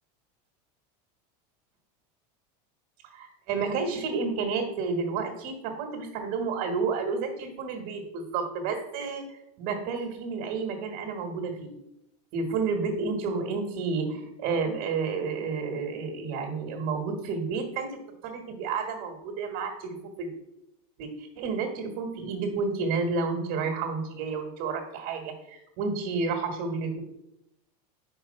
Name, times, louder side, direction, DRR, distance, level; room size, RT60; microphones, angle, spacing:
voice 1, 3.1-11.8 12.3-20.3 21.0-27.0, right 4 dB, 55° right, 3 dB, 1.5 m, -31 dB
5.0 x 4.6 x 5.5 m, 0.87 s
supercardioid pair, 140°, 20 cm